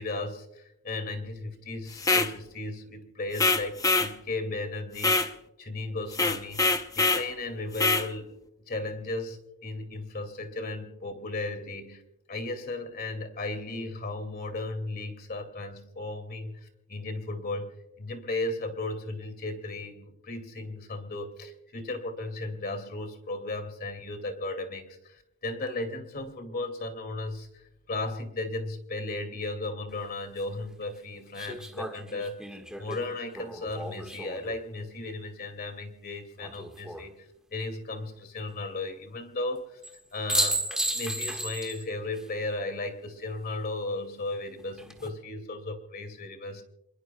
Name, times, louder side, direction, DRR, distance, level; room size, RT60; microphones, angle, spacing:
voice 1, 0.0-5.3 5.6-8.3 8.7-12.0 12.3-17.7 18.0-27.6 27.9-32.4 32.8-39.8 40.1-46.6, left 2 dB, 45° left, 8 dB, 2.4 m, -35 dB
sound 1, 2.0-2.3 3.4-4.1 5.0-5.3 6.1-7.3 7.8-8.1, left 3 dB, 15° left, 0.8 m, -24 dB
sound 2, 29.9-30.0 31.4-34.6 36.4-37.1 39.8-40.0 40.3-41.8 42.2-42.3 44.6-45.1, right 1 dB, 5° right, 1.6 m, -33 dB
28.5 x 21.0 x 2.3 m, 0.88 s
head